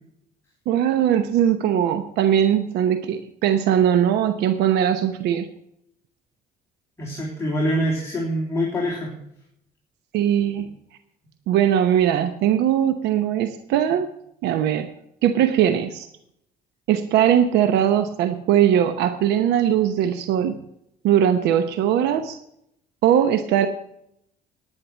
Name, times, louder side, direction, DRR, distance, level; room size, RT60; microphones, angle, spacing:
voice 1, 0.7-5.5 10.1-10.6 11.5-14.1 14.4-14.9 15.2-16.1 16.9-20.6 21.0-22.4 23.0-23.7, right 10 dB, 85° right, 9 dB, 0.9 m, -20 dB
voice 2, 7.0-9.1, equal, 15° left, -4 dB, 3.7 m, -25 dB
11.0 x 9.9 x 6.3 m, 0.76 s
cardioid pair, 110°, 17 cm